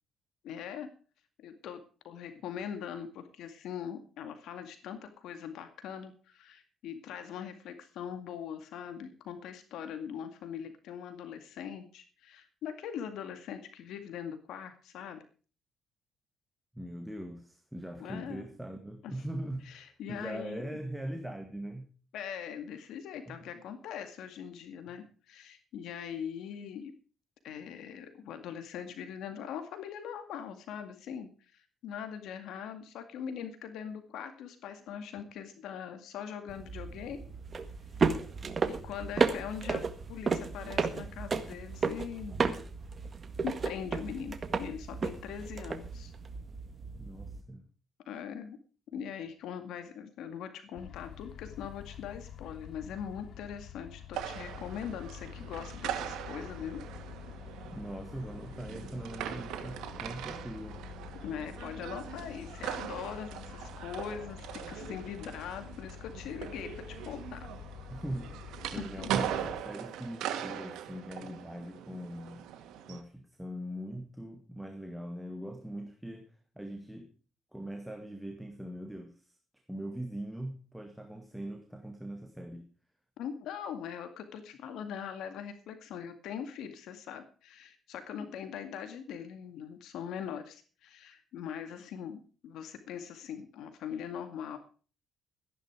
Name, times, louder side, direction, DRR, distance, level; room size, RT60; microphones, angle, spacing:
voice 1, 0.4-0.9 1.4-15.2 18.0-18.4 19.0-19.1 19.7-20.6 22.1-26.9 27.4-37.3 38.7-39.8 40.1-42.3 43.4-46.1 48.1-48.6 48.9-56.8 61.2-67.5 68.8-69.1 83.2-94.6, left 8 dB, 85° left, 8 dB, 2.1 m, -41 dB
voice 2, 16.7-21.9 23.3-23.4 47.0-47.6 57.6-60.8 67.9-68.4 68.7-72.4 72.8-77.1 77.5-79.4 79.7-82.7, right 1 dB, 5° right, 5 dB, 2.0 m, -41 dB
sound 1, 36.5-47.4, right 4 dB, 35° right, 1.7 m, -33 dB
sound 2, 50.8-69.6, left 9 dB, 60° left, 0.9 m, -48 dB
sound 3, 54.1-73.0, right 10 dB, 90° right, 2.1 m, -40 dB
14.5 x 10.5 x 5.0 m, 0.38 s
cardioid pair, 105°, 0 cm